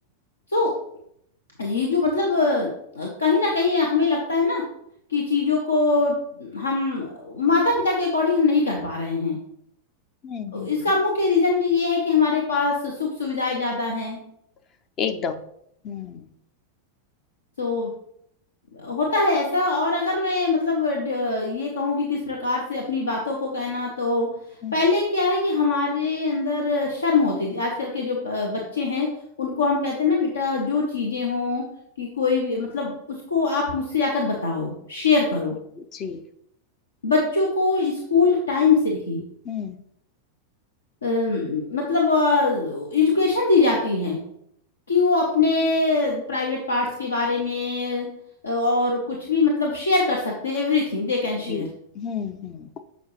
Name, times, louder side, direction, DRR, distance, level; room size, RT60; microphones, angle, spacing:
voice 1, 1.6-4.6 5.1-9.4 10.5-14.2 17.6-17.9 18.7-24.3 24.7-29.1 29.4-31.6 32.0-32.9 33.3-35.5 37.0-39.2 41.0-44.2 44.9-48.1 48.4-51.7, left 3 dB, 70° left, -1 dB, 0.9 m, -23 dB
voice 2, 10.2-10.8 15.0-15.4 15.8-16.3 24.6-24.8 35.8-36.2 39.4-39.8 51.5-51.7 51.9-52.7, left 7 dB, 30° left, 8 dB, 0.5 m, -31 dB
7.2 x 5.1 x 3.1 m, 0.73 s
figure-of-eight pair, 90°, 0 cm